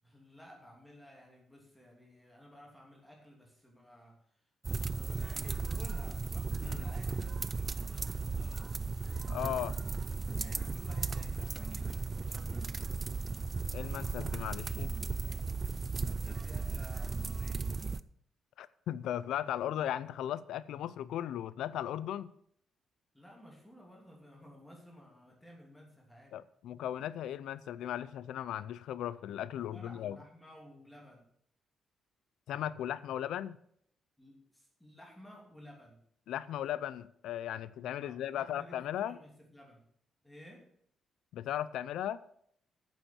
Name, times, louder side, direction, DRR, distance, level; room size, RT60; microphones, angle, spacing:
voice 1, 0.0-4.2 4.7-8.6 10.4-12.9 15.9-17.7 23.1-26.4 29.6-31.2 34.2-36.0 38.0-39.8 40.2-40.7, equal, 5° left, 2.9 m, -55 dB
sound 1, 4.6-18.0, right 4 dB, 25° right, 0.4 m, -36 dB
voice 2, 9.3-9.8 13.7-14.9 18.6-22.3 26.3-30.2 32.5-33.6 36.3-39.2 41.3-42.2, left 11 dB, 85° left, 0.5 m, -37 dB
9.1 x 7.3 x 7.1 m
cardioid pair, 145°, 0 cm